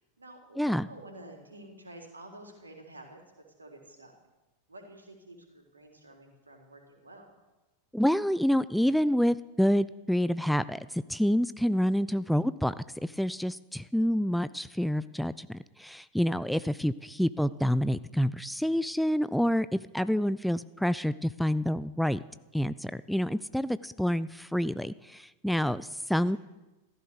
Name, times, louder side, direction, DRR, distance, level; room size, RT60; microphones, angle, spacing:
voice 1, 0.0-3.2 3.6-4.1 4.7-7.3 26.3-26.4, right 1 dB, 80° right, 3 dB, 3.5 m, -50 dB
voice 2, 0.6-0.9 7.9-19.7 19.9-22.2 22.5-26.4, equal, ahead, 16 dB, 0.4 m, -28 dB
15.0 x 14.0 x 6.7 m, 1.1 s
figure-of-eight pair, 90°, 0 cm